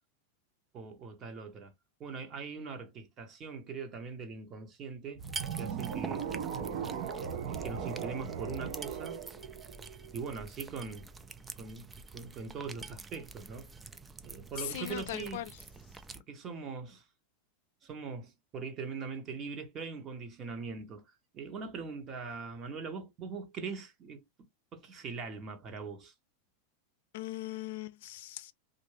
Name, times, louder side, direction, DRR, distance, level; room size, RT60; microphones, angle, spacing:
voice 1, 0.7-1.7 2.0-5.2 5.5-6.3 7.5-9.2 10.1-11.1 11.6-13.7 14.2-15.4 16.1-17.0 17.8-21.0 21.3-24.2 24.7-26.1, right 5 dB, 35° right, 1.0 m, -41 dB
sound 1, 5.2-16.2, right 4 dB, 15° right, 0.4 m, -47 dB
sound 2, 5.2-10.4, right 7 dB, 60° right, 0.7 m, -38 dB
voice 2, 14.6-15.5 27.1-28.5, left 14 dB, 70° left, 0.4 m, -39 dB
2.7 x 2.5 x 3.2 m
hypercardioid pair, 120°, 0 cm